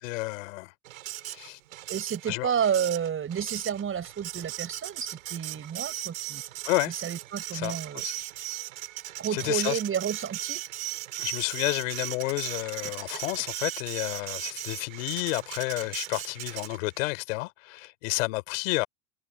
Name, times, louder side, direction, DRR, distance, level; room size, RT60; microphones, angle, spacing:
voice 1, 0.0-0.7 1.3-1.6 2.3-2.5 6.6-6.9 7.5-7.8 8.0-8.1 9.3-9.8 11.2-18.9, left 22 dB, 75° left, 5.2 m, -30 dB
Printer, 0.9-17.0, right 16 dB, 85° right, 5.4 m, -38 dB
voice 2, 1.9-6.4 6.9-8.0 9.2-10.6 13.1-13.2, right 8 dB, 30° right, 6.9 m, -30 dB
hypercardioid pair, 95°, 39 cm